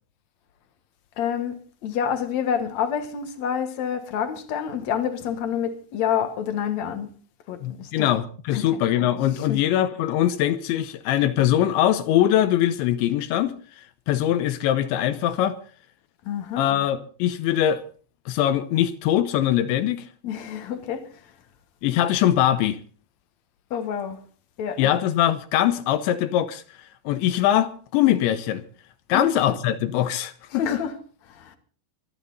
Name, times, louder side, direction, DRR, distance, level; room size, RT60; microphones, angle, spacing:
voice 1, 1.2-7.1 7.5-8.1 8.5-8.8 9.5-9.6 16.3-16.7 20.2-21.1 23.7-24.2 24.6-24.9 29.1-29.3 30.6-31.0 31.3-31.6, left 8 dB, 65° left, 1.8 m, -28 dB
voice 2, 7.6-13.6 14.1-15.6 16.6-17.8 18.3-20.1 21.8-22.8 24.8-26.6 27.1-28.6 29.1-30.6, left 12 dB, 85° left, 3.2 m, -22 dB
25.5 x 11.0 x 4.0 m
omnidirectional pair, 5.2 m